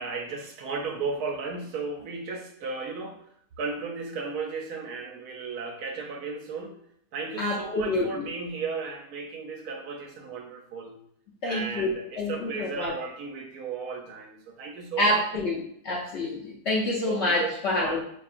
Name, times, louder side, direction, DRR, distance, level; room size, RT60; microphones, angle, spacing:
voice 1, 0.0-3.3 3.6-6.8 7.1-11.0 11.4-15.2 17.1-18.0, right 4 dB, 75° right, 3 dB, 1.0 m, -35 dB
voice 2, 7.4-8.1 11.4-12.9 15.0-18.0, left 1 dB, 60° left, -4 dB, 0.7 m, -27 dB
4.4 x 2.9 x 2.4 m, 0.68 s
omnidirectional pair, 1.7 m